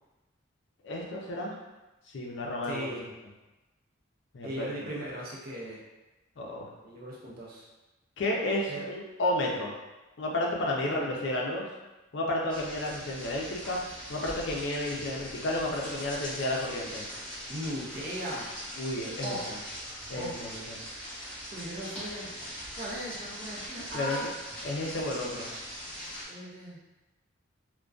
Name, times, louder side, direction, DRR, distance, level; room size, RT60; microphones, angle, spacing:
voice 1, 0.8-1.6 2.1-3.1 4.3-4.7 6.4-6.7 8.2-9.7 10.2-11.7 12.1-13.8 14.1-17.1 18.8-19.6 20.1-20.8 23.9-24.2 24.6-25.5, left 1 dB, 60° left, -2 dB, 0.5 m, -32 dB
voice 2, 2.6-3.1 4.4-5.8 6.8-7.7 8.7-8.9 10.7-11.1 17.5-18.5 19.2-19.5 20.1-20.5 21.5-22.3 22.8-24.3 26.3-26.8, equal, 45° right, -4 dB, 0.6 m, -38 dB
sound 1, 12.5-26.3, equal, 5° left, 0.7 m, -41 dB
2.5 x 2.1 x 2.3 m, 1.1 s
head